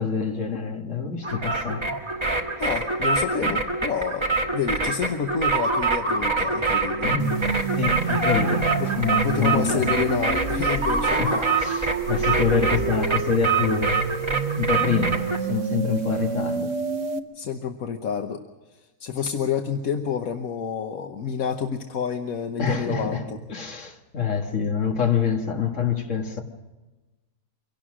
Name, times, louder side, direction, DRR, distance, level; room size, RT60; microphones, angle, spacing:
voice 1, 0.0-1.9 3.4-3.5 7.0-7.3 7.8-10.0 11.0-14.0 14.6-16.7 22.6-26.4, left 6 dB, 60° left, 2.1 m, -26 dB
sound 1, 1.2-15.4, right 3 dB, 20° right, 1.6 m, -25 dB
voice 2, 2.6-7.1 8.8-8.9 9.2-11.2 17.3-18.4 19.0-23.4, left 7 dB, 75° left, 1.5 m, -28 dB
sound 2, 5.9-16.3, equal, 35° left, 6.9 m, -47 dB
sound 3, 7.2-17.2, right 6 dB, 60° right, 1.4 m, -29 dB
25.0 x 17.5 x 6.3 m
omnidirectional pair, 1.5 m